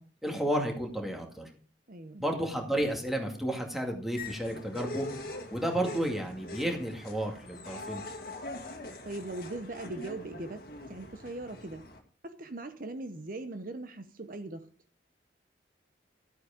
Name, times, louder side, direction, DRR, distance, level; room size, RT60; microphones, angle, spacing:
voice 1, 0.2-1.5 2.2-5.1 5.5-8.0, right 1 dB, ahead, 2.2 m, -32 dB
voice 2, 1.9-2.2 9.0-11.9 12.2-14.7, right 2 dB, 50° right, 0.8 m, -40 dB
sound 1, 4.1-12.0, left 2 dB, 55° left, 1.8 m, -43 dB
12.5 x 8.4 x 5.1 m
head